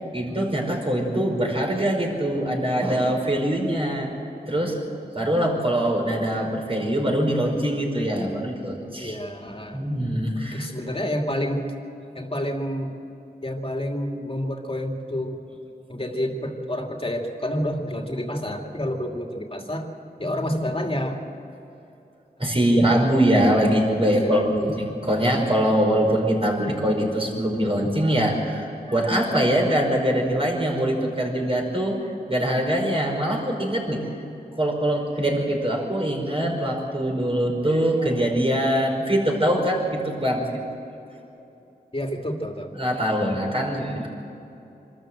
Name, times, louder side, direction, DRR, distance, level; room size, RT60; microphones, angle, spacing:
voice 1, 0.1-4.1 4.5-4.8 5.1-9.2 9.7-10.7 22.4-32.0 32.3-34.3 34.6-40.5 42.8-44.1, right 1 dB, 35° right, 0 dB, 5.2 m, -23 dB
voice 2, 9.0-9.8 10.5-11.7 12.1-12.9 13.4-15.4 15.9-19.9 20.2-21.2 22.6-23.1 24.2-24.7 35.3-35.4 41.9-42.7, equal, 35° left, 2 dB, 2.6 m, -29 dB
25.0 x 13.5 x 7.7 m, 2.9 s
wide cardioid pair, 50°, 17 cm